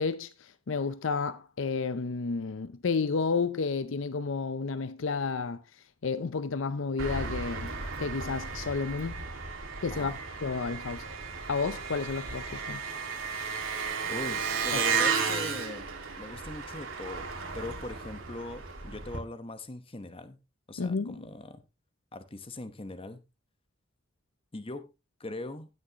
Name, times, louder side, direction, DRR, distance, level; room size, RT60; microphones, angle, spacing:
voice 1, 0.0-5.6 6.0-7.7 8.0-9.2 9.8-10.1 10.4-11.0 11.5-12.8 14.7-14.8 20.8-21.3, left 4 dB, 70° left, 0.6 m, -31 dB
Engine, 7.0-19.2, right 5 dB, 80° right, 2.2 m, -34 dB
voice 2, 9.9-10.2 14.0-15.9 16.2-17.3 17.5-20.4 20.7-21.6 22.1-23.2 24.5-24.9 25.2-25.7, left 2 dB, 30° left, 0.9 m, -40 dB
17.0 x 6.4 x 2.9 m
head